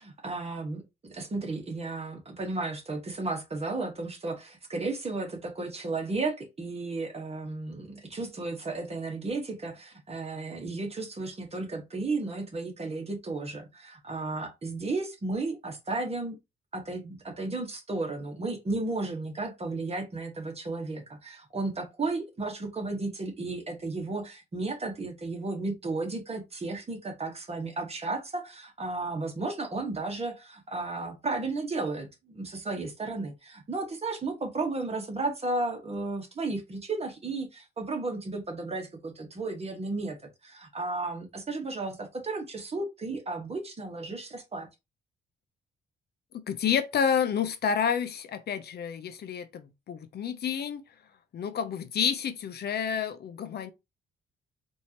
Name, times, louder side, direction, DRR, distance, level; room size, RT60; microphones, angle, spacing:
voice 1, 0.0-16.4 16.7-40.2 40.4-44.7, right 3 dB, 30° right, 1.4 m, -34 dB
voice 2, 46.5-50.8 51.3-53.7, left 7 dB, 55° left, 0.6 m, -29 dB
4.3 x 2.7 x 2.9 m
cardioid pair, 90°, 20 cm